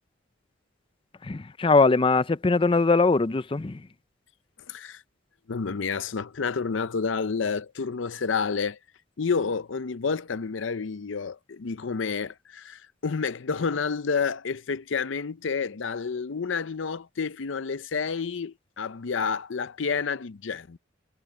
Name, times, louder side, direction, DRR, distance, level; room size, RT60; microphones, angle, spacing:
voice 1, 1.2-3.9, left 3 dB, 25° left, 0.5 m, -21 dB
voice 2, 4.7-5.0 5.5-8.8 9.2-20.8, left 5 dB, 75° left, 0.6 m, -29 dB
head